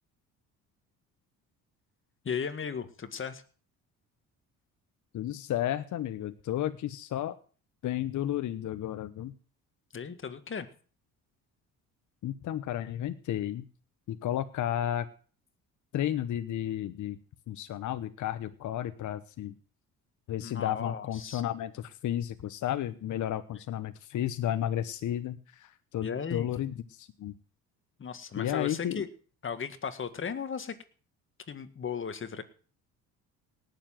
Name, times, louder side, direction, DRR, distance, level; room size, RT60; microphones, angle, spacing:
voice 1, 2.2-3.4 9.9-10.7 20.4-21.4 26.0-26.5 28.0-29.1 29.4-30.8 31.5-32.4, left 6 dB, 35° left, 11 dB, 1.9 m, -36 dB
voice 2, 5.1-7.4 7.8-9.3 12.2-13.7 14.1-15.1 15.9-17.2 17.5-19.5 20.3-27.3 28.4-29.0, left 11 dB, 60° left, 10 dB, 1.1 m, -32 dB
18.5 x 7.3 x 7.5 m, 0.41 s
cardioid pair, 90°, 34 cm